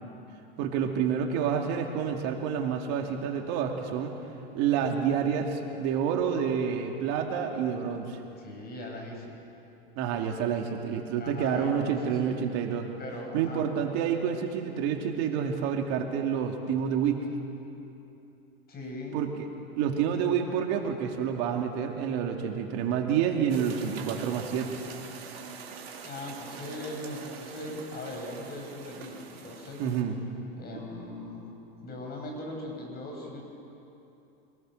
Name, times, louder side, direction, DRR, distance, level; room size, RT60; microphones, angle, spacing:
voice 1, 0.6-4.1 4.5-8.2 10.0-12.9 13.3-17.2 19.1-19.5 19.8-24.8 29.8-30.2, right 7 dB, 60° right, 3 dB, 2.5 m, -28 dB
voice 2, 8.4-9.4 11.1-12.4 13.0-13.6 18.7-19.2 26.0-29.8 30.6-31.5 31.8-33.4, left 1 dB, 30° left, 1 dB, 7.3 m, -40 dB
sound 1, 23.5-30.0, right 5 dB, 85° right, 2.9 m, -44 dB
26.5 x 20.0 x 6.5 m, 2.9 s
hypercardioid pair, 100°, 30 cm